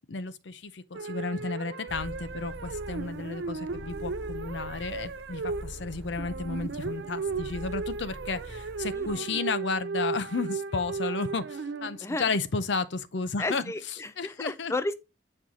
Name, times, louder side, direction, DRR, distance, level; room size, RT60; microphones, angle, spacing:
voice 1, 0.1-13.6 14.2-14.7, left 4 dB, 75° left, 0.6 m, -33 dB
sound 1, 0.9-12.3, right 4 dB, 70° right, 0.5 m, -36 dB
sound 2, 1.9-9.1, equal, 15° right, 3.9 m, -44 dB
voice 2, 8.9-9.4 12.0-12.3 13.4-14.9, left 2 dB, 15° left, 0.4 m, -33 dB
8.5 x 4.5 x 3.7 m
head